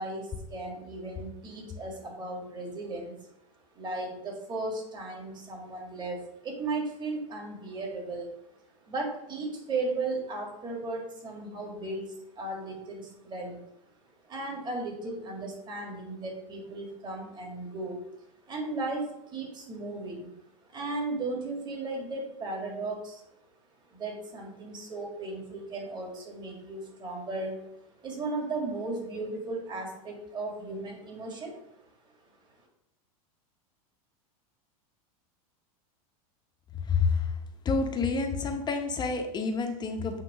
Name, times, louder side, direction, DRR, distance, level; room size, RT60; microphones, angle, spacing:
voice 1, 0.0-3.2 3.8-8.3 8.8-13.6 14.2-18.0 18.5-20.3 20.7-23.2 23.9-27.6 28.0-31.6, right 2 dB, 25° right, 0 dB, 1.9 m, -36 dB
voice 2, 36.8-37.3 37.6-40.2, left 4 dB, 25° left, 5 dB, 0.8 m, -28 dB
8.4 x 3.0 x 4.9 m, 0.81 s
supercardioid pair, 125°, 19 cm